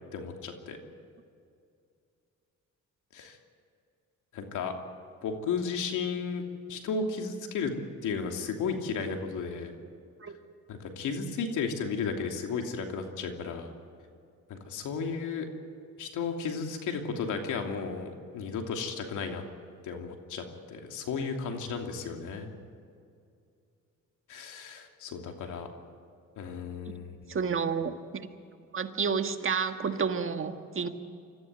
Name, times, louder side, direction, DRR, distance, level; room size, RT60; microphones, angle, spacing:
voice 1, 0.1-0.8 3.1-3.4 4.3-4.7 5.2-6.4 6.7-7.7 8.0-9.7 10.7-13.7 14.5-15.5 16.0-19.4 19.8-22.5 24.3-25.7 26.4-27.4, left 5 dB, 85° left, 3 dB, 2.9 m, -34 dB
voice 2, 27.3-27.9 28.7-30.9, right 6 dB, 45° right, 7 dB, 1.7 m, -30 dB
25.5 x 14.5 x 9.2 m, 2.4 s
cardioid pair, 90°, 30 cm